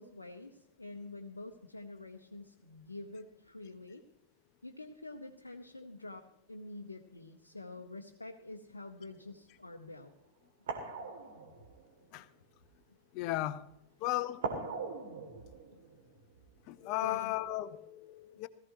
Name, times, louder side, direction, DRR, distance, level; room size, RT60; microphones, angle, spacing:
voice 1, 0.0-4.0 4.6-10.1 17.0-17.3, left 2 dB, 80° left, 0.9 m, -47 dB
sound 1, 9.1-9.3 10.1-10.2 10.7-12.4 14.4-17.0 17.3-17.4, right 4 dB, 60° right, 2.7 m, -41 dB
voice 2, 13.1-13.6 14.0-14.4 16.7-18.5, left 16 dB, 40° left, 0.8 m, -35 dB
18.0 x 15.0 x 3.1 m
figure-of-eight pair, 90°, 0 cm